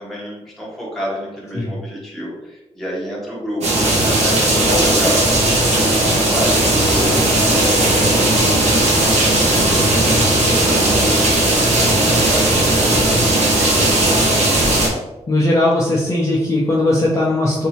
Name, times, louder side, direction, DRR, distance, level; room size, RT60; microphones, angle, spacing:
voice 1, 0.0-5.3 5.9-8.0 8.7-10.1 10.3-11.1 11.6-13.1 13.6-14.8, equal, 5° left, -5 dB, 0.9 m, -30 dB
sound 1, 3.6-14.9, right 1 dB, 75° right, 0.9 m, -16 dB
voice 2, 15.3-17.7, left 1 dB, 25° left, -5 dB, 0.5 m, -18 dB
3.3 x 2.6 x 2.8 m, 1.0 s
wide cardioid pair, 165°, 11 cm